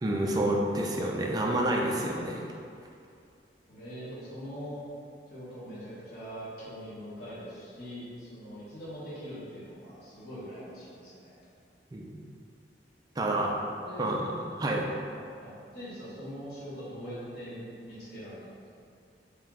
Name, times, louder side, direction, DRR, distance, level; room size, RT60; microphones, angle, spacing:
voice 1, 0.0-2.4 11.9-12.1 13.2-13.5 14.0-14.2 14.6-14.9, right 1 dB, 20° right, -1 dB, 0.4 m, -28 dB
voice 2, 3.7-4.8 5.3-11.3 13.8-14.2 15.4-18.5, equal, 60° left, -11 dB, 1.4 m, -42 dB
3.3 x 3.0 x 3.6 m, 2.4 s
head